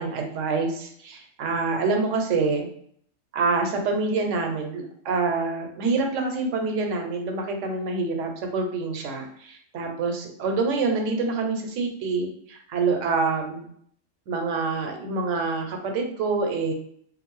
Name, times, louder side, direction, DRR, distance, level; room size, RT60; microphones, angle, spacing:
voice 1, 0.0-2.7 3.3-13.7 14.3-16.7, right 4 dB, 90° right, 3 dB, 1.0 m, -26 dB
2.5 x 2.3 x 3.0 m, 0.65 s
omnidirectional pair, 1.2 m